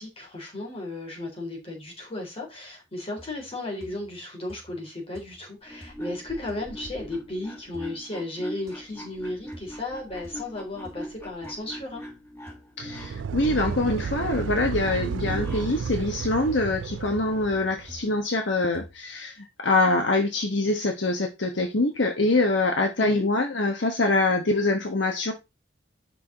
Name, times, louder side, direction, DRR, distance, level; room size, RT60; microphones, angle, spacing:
voice 1, 0.0-12.0 23.0-23.3, left 2 dB, 30° left, 3.7 m, -35 dB
sound 1, 3.2-3.5 3.8-4.2 4.5-4.9 5.1-5.5 5.8-6.1 6.5-6.7 7.7-7.9 8.7-8.8 9.5-9.7 10.2-10.4 10.8-11.0 11.4-11.5 12.5-12.6 13.6-13.8 14.4-14.7 15.3-15.6 16.2-16.4 17.1-17.3 17.9-18.1 18.7-19.0, right 1 dB, 15° right, 2.2 m, -45 dB
sound 2, 5.6-15.8, equal, 15° left, 2.2 m, -42 dB
voice 2, 12.8-25.3, left 2 dB, 65° left, 1.2 m, -24 dB
sound 3, 12.8-18.0, right 6 dB, 75° right, 0.3 m, -32 dB
7.5 x 5.8 x 4.2 m
head